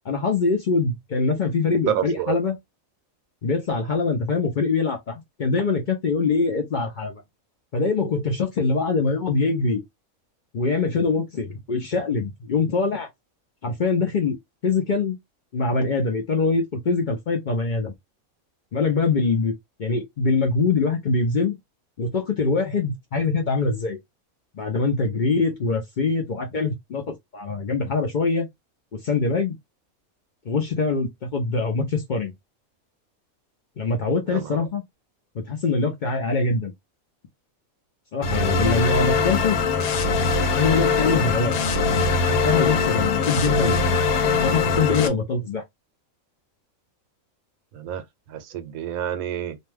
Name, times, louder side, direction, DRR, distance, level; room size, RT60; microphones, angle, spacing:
voice 1, 0.0-2.6 3.4-7.2 7.7-9.8 10.5-13.1 13.6-14.4 14.6-15.2 15.5-17.9 18.7-19.5 19.8-21.6 22.0-24.0 24.5-28.5 28.9-29.6 30.5-32.3 33.8-34.8 35.3-36.7 38.1-39.6 40.5-41.5 42.3-44.0 44.4-45.6, left 4 dB, 65° left, 0.5 m, -23 dB
voice 2, 1.8-2.4 34.3-34.7 47.7-49.6, right 10 dB, 80° right, 1.0 m, -29 dB
sound 1, 38.2-45.1, left 4 dB, 80° left, 1.1 m, -22 dB
2.5 x 2.2 x 3.2 m
omnidirectional pair, 1.5 m